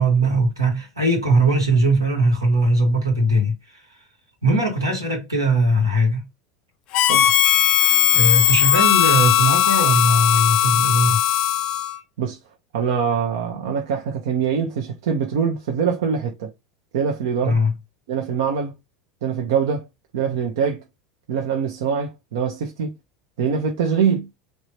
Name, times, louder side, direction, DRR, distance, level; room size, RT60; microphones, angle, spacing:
voice 1, 0.0-3.8 4.4-6.2 7.8-11.2 17.4-17.7, right 1 dB, 85° right, 1.3 m, -20 dB
Harmonica, 6.9-12.0, left 11 dB, 45° left, 0.4 m, -18 dB
voice 2, 12.7-16.5 16.9-17.6 18.1-18.7 19.2-19.9 20.1-20.8 21.3-22.9 23.4-24.3, right 6 dB, 65° right, 0.6 m, -23 dB
3.2 x 2.6 x 3.0 m
figure-of-eight pair, 75°, 2 cm